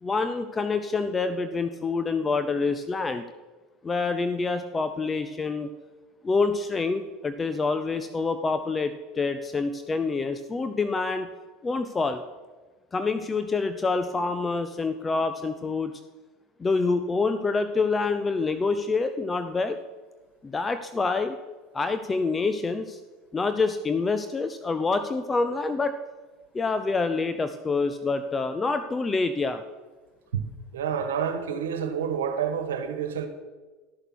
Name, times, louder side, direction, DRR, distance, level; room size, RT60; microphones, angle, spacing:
voice 1, 0.0-3.2 3.8-5.7 6.2-11.3 11.6-12.2 12.9-16.0 16.6-19.8 20.4-21.4 21.7-23.0 23.3-25.9 26.5-29.6, left 4 dB, 20° left, 0.7 m, -27 dB
voice 2, 30.7-33.3, right 7 dB, 85° right, 1.4 m, -28 dB
12.5 x 6.7 x 6.2 m
hypercardioid pair, 90°, 0 cm